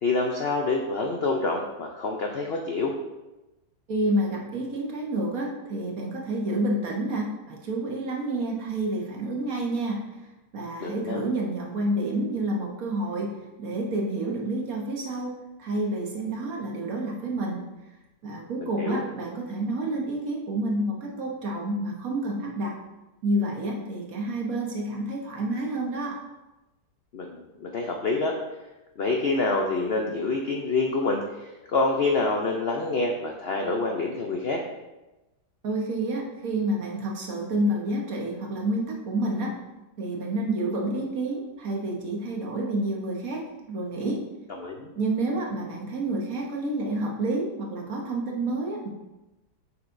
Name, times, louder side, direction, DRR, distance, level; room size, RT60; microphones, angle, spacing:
voice 1, 0.0-2.9 10.8-11.2 18.6-19.0 27.1-28.3 29.0-34.6 44.6-44.9, left 3 dB, 75° left, 1 dB, 0.5 m, -27 dB
voice 2, 3.9-10.0 10.5-13.3 13.6-17.6 18.2-22.7 23.2-26.2 35.6-39.5 40.0-44.2 44.9-48.9, right 1 dB, 60° right, -1 dB, 1.4 m, -29 dB
7.3 x 5.8 x 2.6 m, 1.0 s
omnidirectional pair, 1.8 m